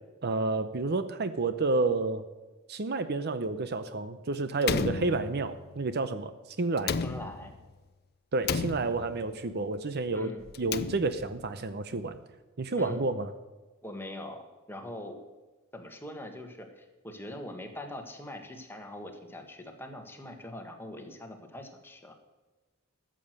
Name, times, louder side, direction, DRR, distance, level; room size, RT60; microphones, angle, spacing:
voice 1, 0.2-2.2 2.7-6.3 6.6-7.0 8.3-10.3 10.6-12.2 12.6-13.3, right 3 dB, 50° right, 11 dB, 0.7 m, -30 dB
Slam, 4.6-5.7 6.8-7.7 8.4-9.3 10.4-11.4, left 5 dB, 50° left, 0.6 m, -33 dB
voice 2, 7.0-7.6 10.1-10.5 12.7-13.0 13.8-15.2 15.7-22.1, left 1 dB, 10° left, 4 dB, 1.6 m, -42 dB
14.0 x 7.7 x 6.6 m, 1.3 s
head